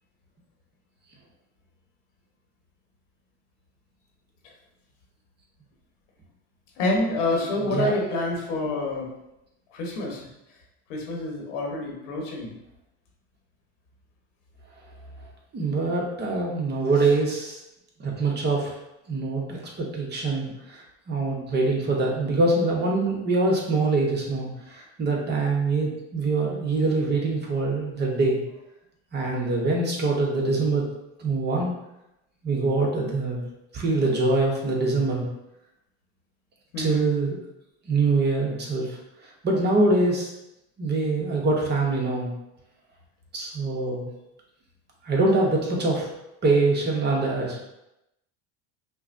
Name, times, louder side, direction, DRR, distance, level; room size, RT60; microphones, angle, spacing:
voice 1, 6.8-9.1 9.7-10.2 10.9-12.5 36.7-37.1, left 2 dB, 80° left, -1 dB, 1.3 m, -27 dB
voice 2, 15.5-17.6 18.0-18.7 19.1-20.8 21.1-28.4 29.1-30.9 31.2-31.7 32.4-33.4 33.7-35.2 36.8-37.4 37.9-39.0 39.4-40.3 40.8-42.3 43.3-44.1 45.0-46.1 46.4-47.7, right 3 dB, 30° right, -2 dB, 1.0 m, -24 dB
5.6 x 2.2 x 2.6 m, 0.88 s
supercardioid pair, 115°, 36 cm